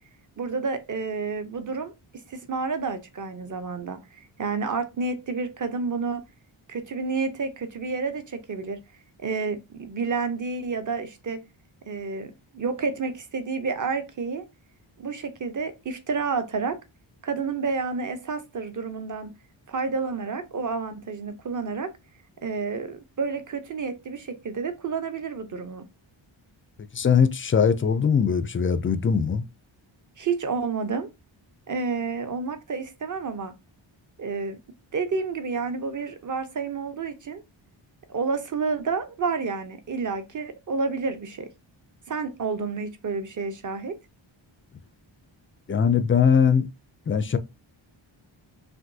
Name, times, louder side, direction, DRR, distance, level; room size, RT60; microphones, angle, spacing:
voice 1, 0.4-1.9 2.3-6.2 6.7-8.8 9.2-11.4 11.8-14.4 15.0-16.8 17.2-19.4 19.7-21.9 22.4-25.8 30.2-31.1 31.7-33.5 34.2-34.6 34.9-37.4 38.1-41.5 42.1-43.9, right 4 dB, 40° right, 0.7 m, -30 dB
voice 2, 26.9-29.4 45.7-46.7 47.1-47.4, left 6 dB, 30° left, 0.3 m, -21 dB
6.0 x 2.6 x 2.7 m
wide cardioid pair, 150°, 49 cm